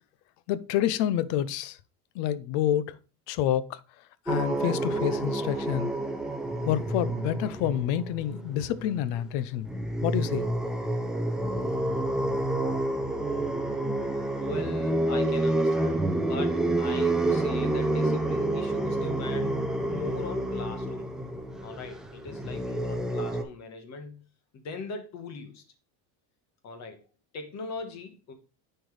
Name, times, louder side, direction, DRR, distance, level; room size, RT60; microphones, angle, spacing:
voice 1, 0.5-1.8 2.2-2.9 3.3-3.8 4.3-5.9 6.7-9.7 10.0-10.5, left 11 dB, 75° left, 0.7 m, -28 dB
sound 1, 4.3-9.4 9.6-23.4, right 1 dB, ahead, 0.3 m, -29 dB
voice 2, 14.4-21.1 21.6-24.2 24.5-25.6 26.6-27.0 27.3-28.3, left 4 dB, 40° left, 1.3 m, -40 dB
10.0 x 4.5 x 3.2 m
cardioid pair, 160°, 42 cm